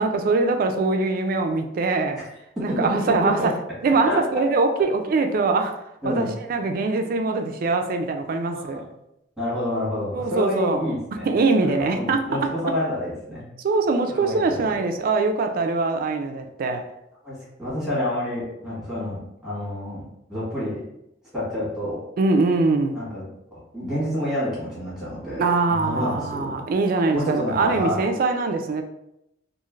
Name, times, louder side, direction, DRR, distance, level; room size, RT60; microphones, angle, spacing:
voice 1, 0.0-2.2 2.6-3.5 3.8-5.8 6.1-8.9 10.1-10.9 11.3-12.5 13.6-16.8 22.2-23.0 25.4-28.8, right 3 dB, 50° right, 6 dB, 0.3 m, -23 dB
voice 2, 2.5-3.5 4.1-4.2 6.0-6.3 8.5-8.8 9.4-11.3 11.6-13.4 14.1-14.7 17.2-20.8 21.3-22.0 22.9-23.2 23.5-25.4 25.7-26.6 27.1-28.0, left 1 dB, 5° right, -9 dB, 1.3 m, -28 dB
3.1 x 2.5 x 2.4 m, 0.84 s
head